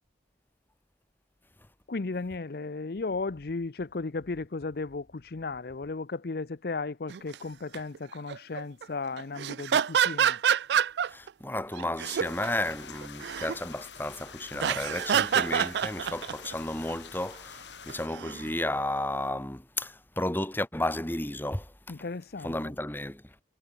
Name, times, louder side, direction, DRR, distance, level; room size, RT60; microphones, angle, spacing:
voice 1, 1.9-10.4 21.9-22.6, left 3 dB, 60° left, 0.6 m, -35 dB
sound 1, 7.1-7.3 7.7-8.0 8.3-8.8 9.2-11.3 11.8-12.5 12.9-13.6 14.5-16.5 17.9-18.5, right 8 dB, 70° right, 0.4 m, -27 dB
voice 2, 11.1-21.7 22.4-23.2, left 1 dB, 10° left, 1.8 m, -33 dB
sound 2, 12.2-18.1, left 6 dB, 90° left, 5.4 m, -47 dB
head